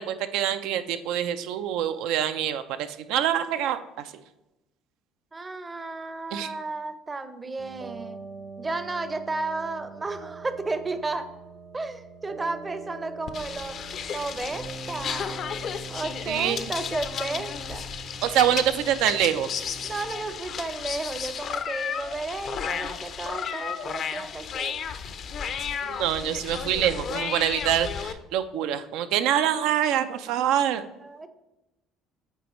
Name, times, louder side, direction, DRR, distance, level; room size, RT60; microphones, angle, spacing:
voice 1, 0.0-4.1 6.3-6.5 16.3-16.7 18.2-19.5 25.8-30.8, right 10 dB, 75° right, 11 dB, 0.4 m, -25 dB
voice 2, 5.3-8.2 8.6-11.3 11.7-13.8 14.1-15.4 15.9-17.9 19.8-24.8 31.0-31.3, right 3 dB, 25° right, 10 dB, 0.6 m, -33 dB
sound 1, 7.6-20.3, right 4 dB, 50° right, 0.9 m, -43 dB
sound 2, 13.3-28.1, left 7 dB, 50° left, 0.5 m, -33 dB
8.1 x 4.2 x 3.0 m, 0.99 s
supercardioid pair, 85°, 0 cm